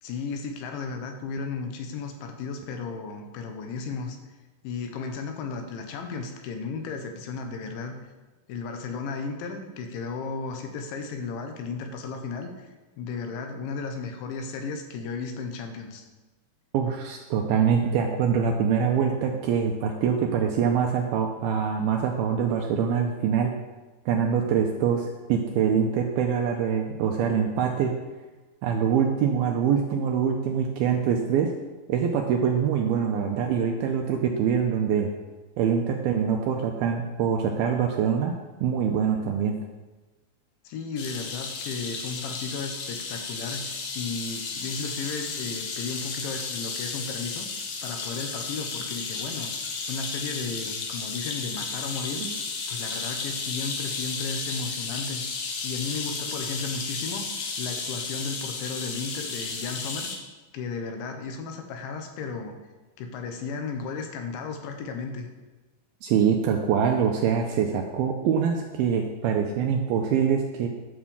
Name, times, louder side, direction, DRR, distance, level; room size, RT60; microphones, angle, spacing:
voice 1, 0.0-4.2 4.6-8.0 8.5-12.7 13.0-16.1 40.7-43.7 44.0-47.5 47.8-49.5 49.9-52.2 52.7-55.2 55.6-57.3 57.6-60.1 60.5-62.6 63.0-65.3, left 4 dB, 85° left, 5 dB, 3.6 m, -34 dB
voice 2, 16.7-23.5 24.1-27.9 28.6-31.5 31.9-35.1 35.6-38.3 38.6-39.6 52.2-52.4 66.0-70.7, right 7 dB, 80° right, 3 dB, 2.3 m, -24 dB
sound 1, 41.0-60.2, left 4 dB, 65° left, 1.9 m, -33 dB
11.5 x 6.1 x 7.2 m, 1.2 s
omnidirectional pair, 5.1 m